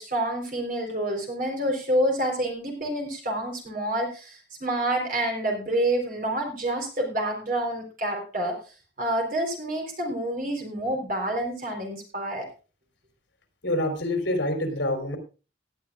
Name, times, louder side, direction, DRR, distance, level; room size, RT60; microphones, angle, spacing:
voice 1, 0.0-8.6 9.0-12.5, right 1 dB, 45° right, 1 dB, 3.9 m, -28 dB
voice 2, 13.6-15.2, left 1 dB, 75° left, 5 dB, 3.7 m, -26 dB
17.5 x 11.5 x 2.4 m, 0.32 s
head